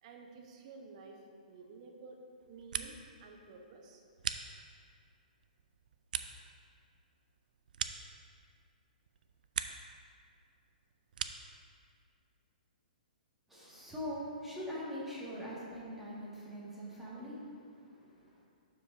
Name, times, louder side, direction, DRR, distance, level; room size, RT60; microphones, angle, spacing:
voice 1, 0.0-1.2 1.5-2.2 2.5-4.0, right 4 dB, 45° right, 2 dB, 1.0 m, -52 dB
sound 1, 2.4-3.2 3.5-5.0 5.4-8.7 9.0-10.0 10.3-11.6, right 7 dB, 65° right, 0.4 m, -42 dB
voice 2, 13.5-18.4, equal, 5° right, -8 dB, 1.8 m, -43 dB
12.0 x 4.9 x 2.7 m, 2.2 s
hypercardioid pair, 140°, 5 cm